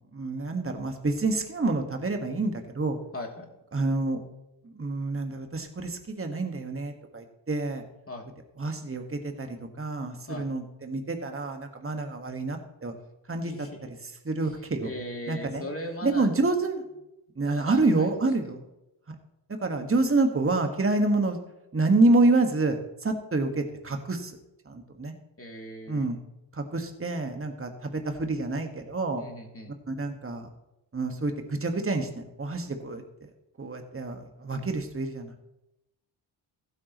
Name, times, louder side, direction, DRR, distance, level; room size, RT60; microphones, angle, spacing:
voice 1, 0.1-3.0 3.7-4.2 4.6-7.8 8.6-12.9 13.3-13.5 14.2-14.9 15.3-15.6 16.0-16.8 17.4-18.6 19.6-21.4 21.7-24.4 24.6-25.1 25.9-26.2 26.5-29.2 29.9-30.5 30.9-33.3 33.6-35.3, right 2 dB, 25° right, 5 dB, 1.7 m, -27 dB
voice 2, 3.1-3.5 8.1-8.2 10.3-10.5 13.4-13.8 14.4-16.4 17.4-18.2 25.4-26.1 29.2-29.7, left 1 dB, 25° left, 1 dB, 2.9 m, -39 dB
15.0 x 8.6 x 3.1 m, 0.90 s
supercardioid pair, 50°, 49 cm